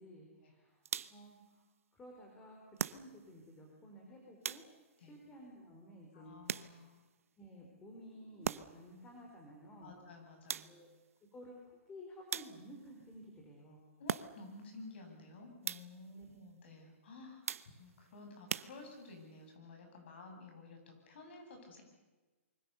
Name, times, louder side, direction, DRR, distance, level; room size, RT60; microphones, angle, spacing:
voice 1, 0.0-1.6 1.9-4.6 5.0-6.3 7.4-9.9 10.6-10.9 11.3-13.9 16.1-16.3, equal, 10° left, 0 dB, 3.7 m, -54 dB
sound 1, 0.8-1.4 2.8-3.4 4.4-5.0 6.5-7.1 8.4-8.9 10.5-11.0 12.3-12.9 14.1-14.6 15.6-16.1 17.5-18.0 18.5-19.2, right 7 dB, 80° right, 1.0 m, -41 dB
voice 2, 6.1-7.0 9.8-10.7 14.0-21.8, left 3 dB, 50° left, 3 dB, 7.8 m, -53 dB
26.0 x 24.0 x 6.9 m, 1.2 s
hypercardioid pair, 165°, 8 cm